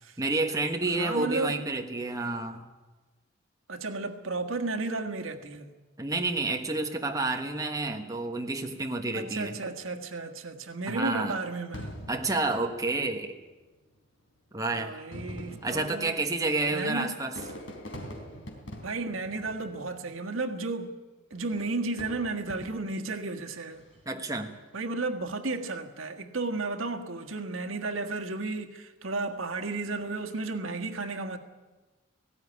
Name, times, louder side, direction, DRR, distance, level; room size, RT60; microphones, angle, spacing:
voice 1, 0.2-2.6 6.0-9.6 10.9-11.4 12.1-13.3 14.5-15.0 15.6-17.4 24.1-24.5, right 2 dB, 15° right, 1.3 m, -29 dB
voice 2, 0.9-1.6 3.7-5.7 9.1-12.0 14.7-16.1 16.7-17.2 18.8-20.9 21.3-23.9 24.7-31.4, right 3 dB, 90° right, 1.6 m, -33 dB
Fireworks, 11.7-13.4 14.2-14.3 15.0-20.3 21.3-23.1 23.7-24.1, equal, 65° left, 3.9 m, -44 dB
18.5 x 16.5 x 9.8 m
head